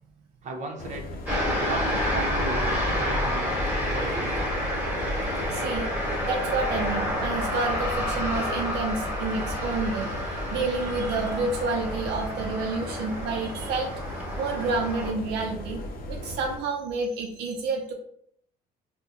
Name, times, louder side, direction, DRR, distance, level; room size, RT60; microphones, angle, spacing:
voice 1, 0.4-1.1 1.6-3.6 3.9-4.5, right 3 dB, 45° right, 1 dB, 0.8 m, -36 dB
sound 1, 0.8-16.6, left 1 dB, 60° left, 0.6 m, -37 dB
sound 2, 1.2-15.1, left 1 dB, 10° right, 1.3 m, -29 dB
Wind instrument woodwind instrument, 1.9-12.3, right 1 dB, 15° left, 1.1 m, -44 dB
voice 2, 5.5-5.9 6.3-13.9 14.4-15.8 16.1-17.9, right 3 dB, 80° right, 2 dB, 0.5 m, -29 dB
3.7 x 2.2 x 2.9 m, 0.68 s
cardioid pair, 110°, 17 cm